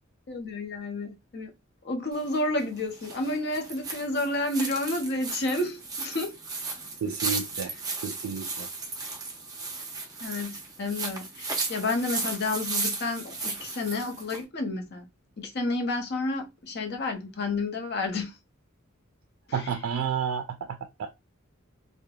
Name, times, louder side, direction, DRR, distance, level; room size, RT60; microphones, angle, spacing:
voice 1, 0.3-1.5 1.8-6.4 10.2-15.1 15.4-18.3 19.5-19.6, left 2 dB, 50° left, 0.6 m, -30 dB
sound 1, 2.1-14.4, right 3 dB, 20° right, 0.6 m, -35 dB
voice 2, 7.0-7.7 8.0-8.7 19.5-21.1, right 7 dB, 85° right, 0.3 m, -31 dB
3.1 x 2.1 x 2.3 m
head